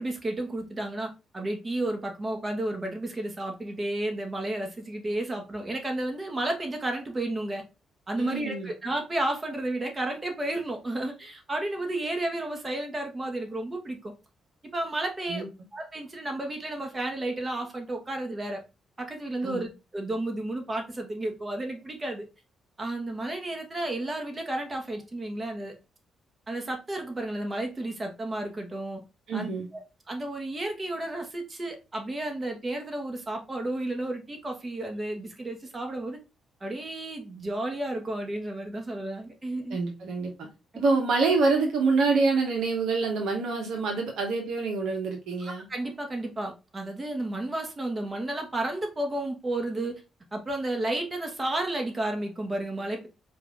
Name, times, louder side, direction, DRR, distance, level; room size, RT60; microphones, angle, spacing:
voice 1, 0.0-7.6 8.1-14.1 14.7-15.4 15.7-18.6 19.0-22.2 22.8-25.7 26.5-29.0 29.3-29.8 30.1-36.2 36.6-39.8 45.7-50.0 50.3-53.1, right 1 dB, 30° right, 1.3 m, -32 dB
voice 2, 8.2-8.7 15.3-15.5 19.4-19.6 29.3-29.7 39.7-40.5 40.8-45.6, right 4 dB, 75° right, 0.9 m, -26 dB
4.7 x 2.5 x 3.6 m
supercardioid pair, 55°, 0 cm